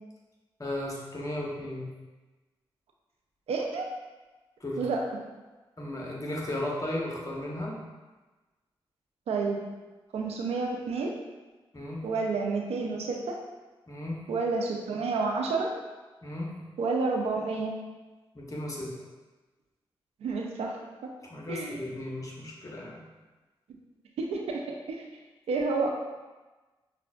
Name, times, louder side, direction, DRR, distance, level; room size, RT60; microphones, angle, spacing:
voice 1, 0.6-1.9 4.6-4.9 5.8-7.7 11.7-12.0 13.9-14.2 16.2-16.5 18.3-18.9 21.3-23.0, left 1 dB, 35° left, -3 dB, 1.1 m, -35 dB
voice 2, 3.5-3.9 4.8-5.0 9.3-9.6 10.1-11.1 12.0-13.4 14.3-15.7 16.8-17.7 20.2-20.8 21.5-21.8 24.2-24.6 25.5-25.9, right 4 dB, 90° right, 1 dB, 0.5 m, -29 dB
5.7 x 2.4 x 2.3 m, 1.2 s
cardioid pair, 45°, 10 cm